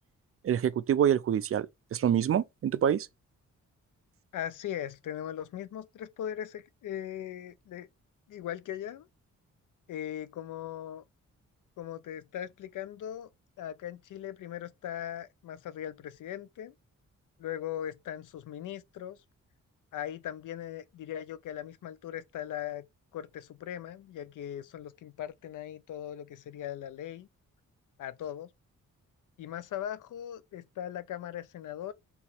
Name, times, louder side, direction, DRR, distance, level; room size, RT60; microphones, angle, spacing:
voice 1, 0.4-3.1, right 9 dB, 45° right, 0.4 m, -26 dB
voice 2, 4.3-7.9 8.3-9.1 9.9-11.0 11.8-13.3 13.6-16.7 17.4-19.2 19.9-22.9 23.1-27.3 28.0-28.5 29.4-31.9, left 10 dB, 70° left, 0.5 m, -39 dB
3.7 x 2.9 x 4.2 m
cardioid pair, 65°, 32 cm